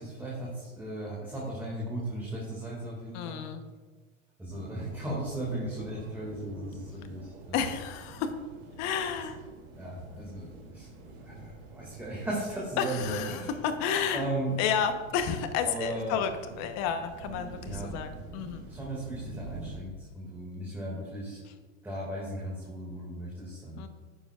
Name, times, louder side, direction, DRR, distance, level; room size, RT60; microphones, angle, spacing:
voice 1, 0.0-3.4 4.4-7.7 9.1-9.2 9.8-13.5 14.1-14.5 15.6-16.2 17.7-17.9 18.7-21.4 21.8-23.9, right 1 dB, 5° right, -5 dB, 2.1 m, -36 dB
voice 2, 3.1-3.6 7.5-8.3 8.8-9.4 12.8-14.2 14.6-16.3 16.6-18.7 23.8-23.9, left 7 dB, 40° left, 8 dB, 1.0 m, -31 dB
sound 1, 4.5-19.8, right 3 dB, 70° right, 3.0 m, -46 dB
11.5 x 9.3 x 2.4 m, 1.4 s
hypercardioid pair, 125°, 41 cm